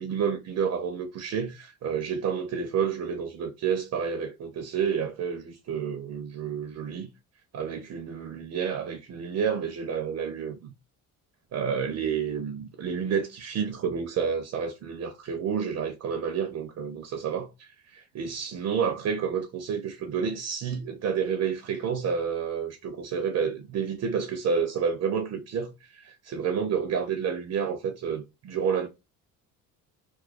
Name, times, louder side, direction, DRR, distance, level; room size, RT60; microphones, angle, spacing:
voice 1, 0.0-7.1 7.5-10.7 11.5-28.9, right 7 dB, 45° right, 0.5 m, -30 dB
2.3 x 2.2 x 2.4 m
cardioid pair, 90°, 36 cm